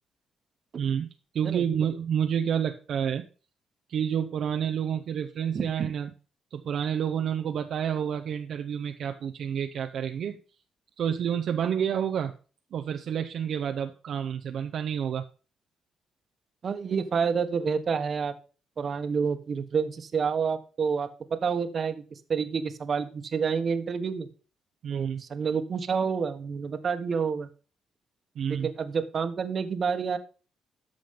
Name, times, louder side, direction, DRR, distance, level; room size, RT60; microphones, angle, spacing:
voice 1, 0.8-1.1 1.3-3.2 3.9-6.1 6.5-10.4 11.0-12.3 12.7-15.2 24.8-25.2 28.4-28.7, right 8 dB, 65° right, 5 dB, 0.7 m, -29 dB
voice 2, 16.6-18.3 18.8-24.3 24.9-27.5 28.5-30.2, right 6 dB, 50° right, 9 dB, 1.3 m, -28 dB
13.5 x 5.2 x 5.3 m, 0.37 s
cardioid pair, 90°, 0 cm